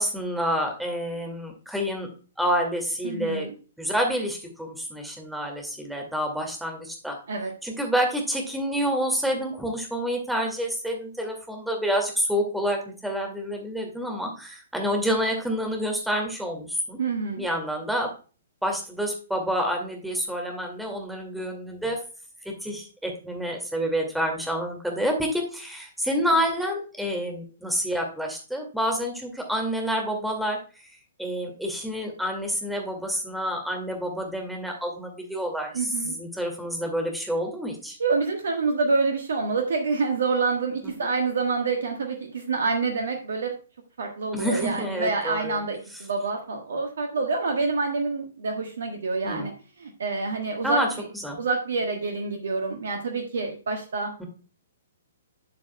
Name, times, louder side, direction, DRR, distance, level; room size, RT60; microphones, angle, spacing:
voice 1, 0.0-2.1 2.4-3.5 3.8-7.2 7.6-17.0 17.3-18.1 18.6-22.0 22.5-30.6 31.2-38.0 40.8-40.9 44.3-45.6 49.2-49.5 50.6-50.9 51.1-51.4 54.2-54.3, equal, ahead, 2 dB, 2.1 m, -28 dB
voice 2, 3.0-3.5 7.3-7.5 17.0-17.4 35.7-36.1 38.0-43.5 44.0-49.5 49.8-50.8 51.4-54.1, right 4 dB, 60° right, 3 dB, 1.3 m, -27 dB
12.0 x 7.3 x 2.2 m, 0.35 s
figure-of-eight pair, 120°, 0 cm